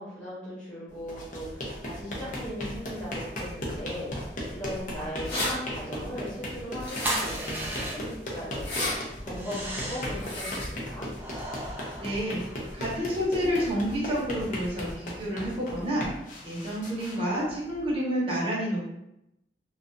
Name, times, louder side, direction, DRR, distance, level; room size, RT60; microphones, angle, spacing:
voice 1, 0.0-4.1 4.5-8.9 9.2-11.1, equal, 5° left, -9 dB, 0.9 m, -38 dB
sound 1, 1.0-17.9, equal, 45° left, 0.5 m, -37 dB
sound 2, 5.3-5.5 6.8-7.5 8.5-9.0 10.2-10.7, left 1 dB, 80° left, 0.8 m, -32 dB
sound 3, 7.0-8.3 9.3-10.2 11.2-12.8, right 1 dB, 10° right, 0.3 m, -35 dB
voice 2, 12.0-12.4 12.7-16.1 16.4-18.8, equal, 30° right, -6 dB, 0.8 m, -29 dB
2.3 x 2.3 x 2.5 m, 0.84 s
head